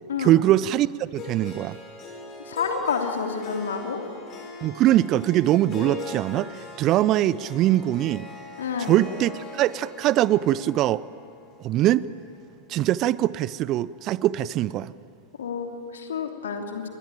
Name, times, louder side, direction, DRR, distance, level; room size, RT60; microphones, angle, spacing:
voice 1, 0.2-1.8 4.6-8.3 8.8-11.0 11.6-12.1 12.7-14.9, right 14 dB, 35° right, 20 dB, 0.6 m, -22 dB
Harp, 1.1-13.3, left 2 dB, 35° left, 7.7 m, -41 dB
voice 2, 2.4-4.0 8.6-8.9 15.4-16.9, left 6 dB, 65° left, 4 dB, 2.9 m, -29 dB
29.5 x 20.5 x 9.0 m, 2.3 s
figure-of-eight pair, 90°, 0 cm